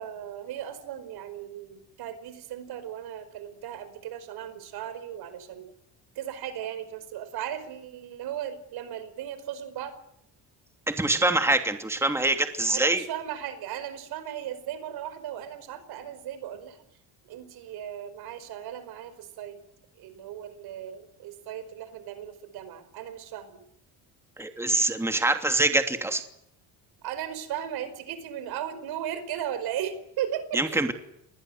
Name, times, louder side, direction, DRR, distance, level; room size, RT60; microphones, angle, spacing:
voice 1, 0.0-5.7 6.2-10.0 12.7-16.8 17.2-19.6 20.0-23.7 27.0-30.9, right 10 dB, 75° right, 12 dB, 5.1 m, -36 dB
voice 2, 10.9-13.0 24.4-26.2 30.5-30.9, right 2 dB, 5° right, 6 dB, 2.8 m, -24 dB
29.0 x 21.0 x 8.0 m, 0.75 s
cardioid pair, 110°, 38 cm